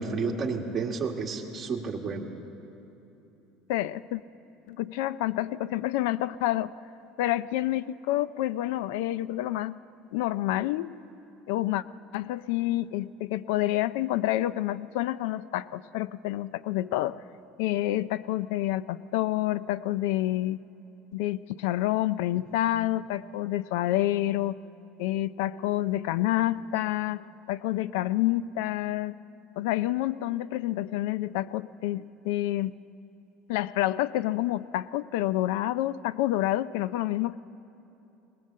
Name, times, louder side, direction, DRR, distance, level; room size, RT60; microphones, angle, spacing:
voice 1, 0.0-2.3, right 4 dB, 25° right, 1 dB, 1.9 m, -31 dB
voice 2, 3.7-4.2 4.7-6.7 7.2-9.8 10.1-10.9 11.5-11.8 12.1-17.2 17.6-20.6 21.1-24.6 25.0-29.2 29.6-32.8 33.5-37.4, left 15 dB, 80° left, 17 dB, 0.4 m, -28 dB
19.5 x 19.5 x 7.5 m, 2.9 s
cardioid pair, 150°, 0 cm